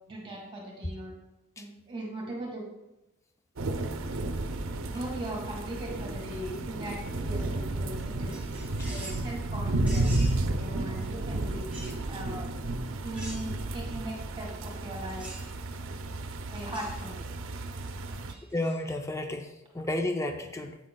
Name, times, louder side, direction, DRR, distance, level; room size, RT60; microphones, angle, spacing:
voice 1, 0.1-1.1 1.6-2.7 4.9-8.3 8.9-10.1 10.4-11.7 12.1-12.5 13.0-15.3 16.5-17.3 18.3-18.4, right 1 dB, 25° right, -1 dB, 1.7 m, -39 dB
sound 1, 3.6-18.3, right 2 dB, 80° right, 0.6 m, -32 dB
sound 2, 8.3-9.3 9.9-10.4 11.7-12.0 13.1-13.7 15.2-15.5 16.5-17.0 18.3-18.8, right 2 dB, 5° right, 2.6 m, -44 dB
voice 2, 18.5-20.8, left 1 dB, 15° left, 5 dB, 0.5 m, -32 dB
10.0 x 8.3 x 2.3 m, 0.95 s
head